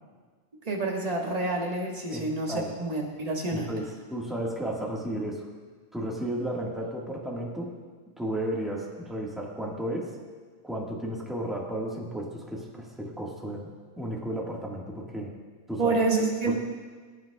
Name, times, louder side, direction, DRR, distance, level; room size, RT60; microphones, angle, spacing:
voice 1, 0.6-3.7 15.8-16.5, right 3 dB, 25° right, -1 dB, 1.3 m, -28 dB
voice 2, 2.1-2.7 3.5-5.5 5.9-7.7 8.2-10.1 10.6-13.7 14.0-15.3 15.7-15.9 16.5-16.6, right 1 dB, ahead, -3 dB, 1.3 m, -33 dB
17.5 x 9.2 x 2.3 m, 1.5 s
omnidirectional pair, 1.7 m